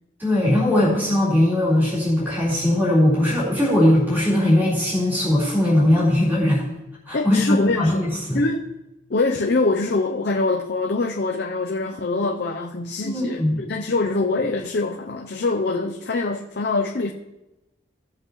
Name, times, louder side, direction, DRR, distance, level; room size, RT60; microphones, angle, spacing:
voice 1, 0.2-6.6 7.1-8.4 13.0-13.6, left 1 dB, 10° right, -9 dB, 4.0 m, -19 dB
voice 2, 7.1-8.0 8.3-8.7 9.1-17.1, left 3 dB, 55° left, 1 dB, 0.6 m, -24 dB
17.0 x 7.6 x 3.1 m, 0.97 s
head